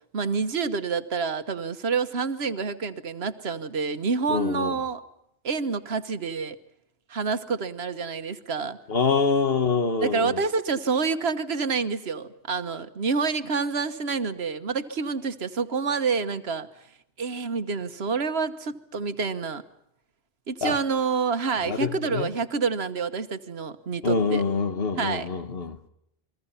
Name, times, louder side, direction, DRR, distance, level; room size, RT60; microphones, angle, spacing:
voice 1, 0.1-5.0 5.4-6.6 7.1-8.8 10.0-16.7 17.2-19.6 20.5-24.4 25.0-25.3, right 5 dB, 70° right, 1.4 m, -28 dB
voice 2, 4.3-4.8 8.9-10.4 20.6-20.8 21.6-22.3 24.0-25.8, left 5 dB, 60° left, 1.5 m, -25 dB
29.5 x 22.0 x 5.6 m
omnidirectional pair, 1.1 m